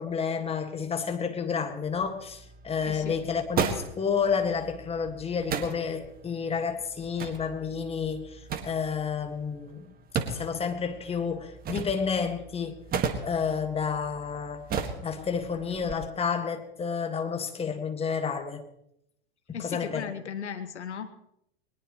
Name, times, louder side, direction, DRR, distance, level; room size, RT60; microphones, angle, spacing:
voice 1, 0.0-9.9 10.3-12.8 13.2-14.7 15.0-18.6 19.5-20.1, left 6 dB, 15° left, 1.8 m, -30 dB
sound 1, 1.8-15.9, right 6 dB, 25° right, 1.8 m, -36 dB
voice 2, 2.8-3.2 19.5-21.1, left 7 dB, 80° left, 1.6 m, -37 dB
21.0 x 20.0 x 3.1 m
hypercardioid pair, 100°, 34 cm